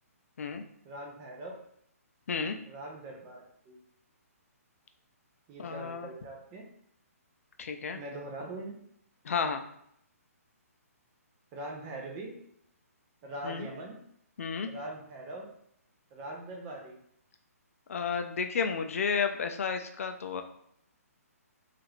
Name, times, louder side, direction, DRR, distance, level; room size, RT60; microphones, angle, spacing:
voice 1, 0.8-1.5 2.7-3.8 5.5-6.6 7.9-8.8 11.5-12.3 13.2-14.0 14.7-15.5 16.1-17.0, right 1 dB, 20° right, 0 dB, 0.4 m, -42 dB
voice 2, 5.6-6.1 7.6-8.0 9.2-9.6 13.4-13.7 14.4-14.7 17.9-20.4, left 6 dB, 65° left, 6 dB, 0.4 m, -32 dB
2.8 x 2.4 x 3.0 m, 0.71 s
hypercardioid pair, 165°, 8 cm